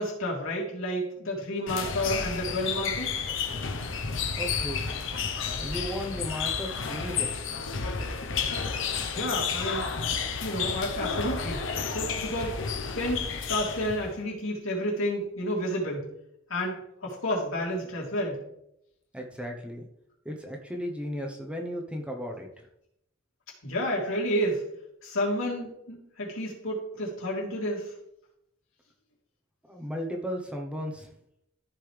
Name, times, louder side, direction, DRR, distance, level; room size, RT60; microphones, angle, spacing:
voice 1, 0.0-3.2 9.1-9.9 10.4-12.6 12.9-16.1 16.5-18.4 23.6-24.6 25.0-27.9, equal, 90° left, -4 dB, 3.1 m, -30 dB
sound 1, 1.7-14.1, left 5 dB, 65° left, 1.0 m, -31 dB
voice 2, 4.4-4.9 5.6-7.4 19.1-19.8 20.2-22.7 29.7-31.1, equal, 5° right, 1 dB, 1.0 m, -35 dB
14.0 x 5.3 x 3.4 m, 0.78 s
head